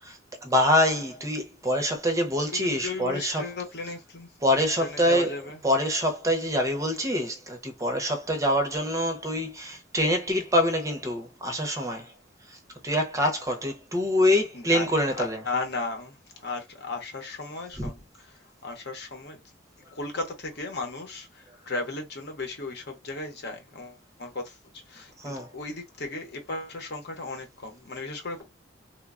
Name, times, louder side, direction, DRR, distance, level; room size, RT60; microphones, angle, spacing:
voice 1, 0.0-3.4 4.4-5.3 5.6-12.1 12.5-12.6 12.8-15.4 17.8-17.9 25.2-25.5, equal, 15° right, 0.6 m, -25 dB
voice 2, 2.5-4.3 4.8-5.6 14.5-14.9 15.2-16.2 16.4-19.4 20.0-24.6 24.9-28.4, left 3 dB, 60° left, 0.8 m, -35 dB
3.1 x 2.1 x 2.4 m
head